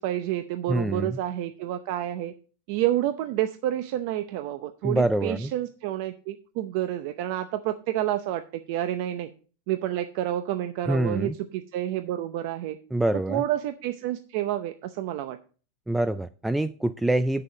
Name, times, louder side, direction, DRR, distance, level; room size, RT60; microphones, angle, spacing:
voice 1, 0.0-2.3 2.7-9.3 9.7-12.8 13.3-15.4, right 13 dB, 50° right, 9 dB, 0.7 m, -29 dB
voice 2, 0.7-1.2 4.8-5.5 10.9-11.3 12.9-13.4 15.9-17.4, right 1 dB, 5° right, 12 dB, 0.3 m, -25 dB
9.5 x 6.8 x 4.9 m, 0.38 s
supercardioid pair, 160°, 0 cm